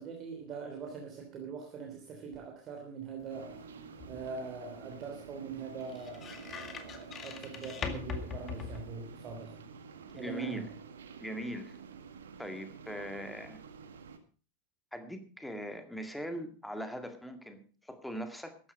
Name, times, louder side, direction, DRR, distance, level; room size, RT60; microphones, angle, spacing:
voice 1, 0.0-3.6 4.1-9.6 10.2-10.7, right 5 dB, 30° right, 2 dB, 3.1 m, -42 dB
sound 1, 3.2-9.4, left 6 dB, 25° left, 2.1 m, -43 dB
sound 2, 3.3-14.2, right 6 dB, 65° right, 1.8 m, -49 dB
voice 2, 10.1-10.7 11.2-11.8 12.4-13.6 14.9-18.6, equal, ahead, 7 dB, 2.0 m, -40 dB
14.0 x 11.5 x 5.4 m, 0.38 s
figure-of-eight pair, 90°, 0 cm